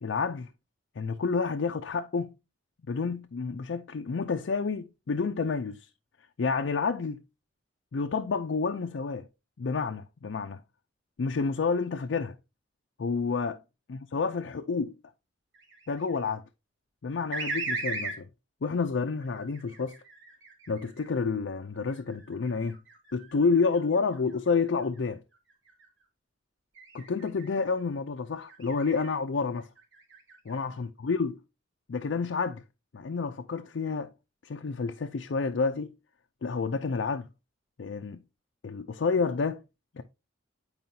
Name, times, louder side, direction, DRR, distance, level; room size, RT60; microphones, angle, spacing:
voice 1, 0.0-0.5 1.0-2.4 2.9-5.9 6.4-7.2 7.9-9.3 9.6-10.6 11.2-12.4 13.0-13.6 13.9-15.0 15.9-16.4 17.0-18.3 18.6-19.9 20.7-22.8 23.1-25.2 26.9-29.7 30.5-31.4 31.9-32.6 32.9-34.1 34.4-36.0 36.4-37.3 37.8-38.2 38.6-39.6 39.9-40.0, left 4 dB, 70° left, 0.5 m, -29 dB
sound 1, 15.5-16.3 17.3-18.2 19.2-21.1 21.7-25.1 25.5-25.9 26.7-27.7 28.4-29.1 29.6-30.6, right 3 dB, 75° right, 2.6 m, -39 dB
9.2 x 4.7 x 2.7 m
head